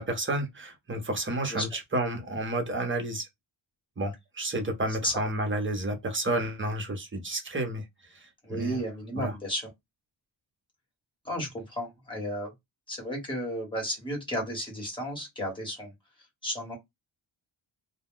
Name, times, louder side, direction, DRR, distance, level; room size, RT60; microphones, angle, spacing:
voice 1, 0.0-3.3 4.0-7.8 8.1-8.8 9.1-9.3, right 1 dB, 25° right, 0.7 m, -31 dB
voice 2, 8.4-9.7 11.2-12.5 12.9-15.9 16.4-16.8, equal, 10° left, 1.3 m, -33 dB
2.3 x 2.2 x 3.6 m
wide cardioid pair, 155°, 48 cm